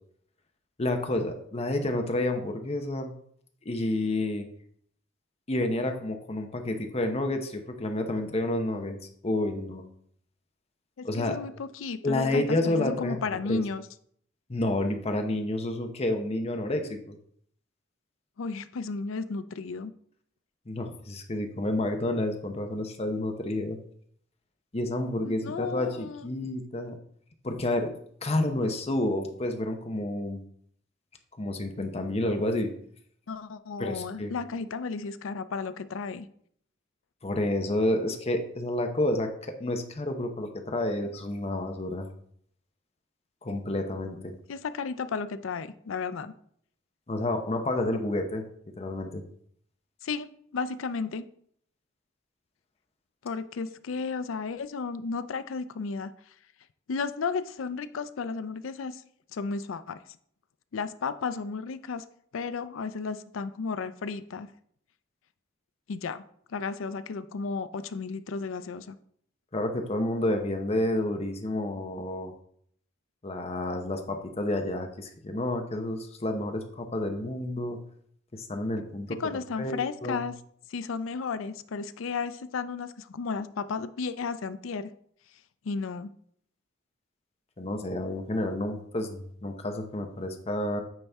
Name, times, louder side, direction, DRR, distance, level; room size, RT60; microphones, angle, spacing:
voice 1, 0.8-3.1 3.6-4.5 5.5-9.0 9.2-9.8 11.0-11.4 12.0-13.2 13.5-13.6 14.5-17.2 20.7-23.8 24.7-27.0 27.4-27.9 28.2-30.4 31.4-32.7 33.8-34.3 37.2-42.1 43.4-44.3 47.1-48.4 48.8-49.2 69.5-72.3 73.2-77.8 78.3-79.2 79.6-80.2 87.6-90.8, left 1 dB, 30° left, 5 dB, 0.8 m, -29 dB
voice 2, 11.0-13.8 18.4-19.9 25.2-26.3 33.3-36.3 44.5-46.3 50.0-51.2 53.2-56.1 56.9-59.0 59.3-60.0 60.7-62.0 62.3-64.5 65.9-66.2 66.5-69.0 79.1-80.3 80.7-84.9 85.6-86.1, left 4 dB, 80° left, 13 dB, 0.4 m, -33 dB
8.9 x 4.2 x 3.5 m, 0.64 s
head